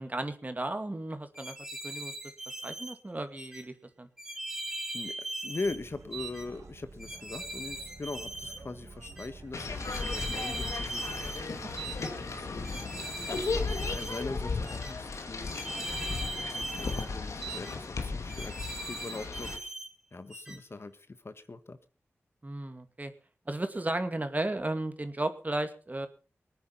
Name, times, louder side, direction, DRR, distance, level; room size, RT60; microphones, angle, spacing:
voice 1, 0.0-1.6 1.8-2.1 2.6-4.1 11.8-11.9 20.5-20.6 22.4-23.1 23.5-26.1, right 2 dB, 30° right, 8 dB, 2.3 m, -34 dB
sound 1, 1.3-2.9 3.4-3.6 4.2-5.8 6.1-6.5 7.0-8.6 9.0-9.3 9.8-11.4 11.8-12.1 12.6-14.2 14.7-14.9 15.5-17.1 17.4-17.8 18.3-19.9 20.3-20.6, right 2 dB, 10° right, 3.4 m, -40 dB
voice 2, 5.4-11.1 12.0-15.5 16.4-19.8 20.1-21.8, left 3 dB, 55° left, 11 dB, 1.4 m, -41 dB
sound 2, 5.6-14.4, right 3 dB, 80° right, 2.2 m, -50 dB
sound 3, 9.5-19.6, left 4 dB, 80° left, 2.3 m, -35 dB
20.0 x 9.4 x 5.6 m, 0.38 s
cardioid pair, 45°, 5 cm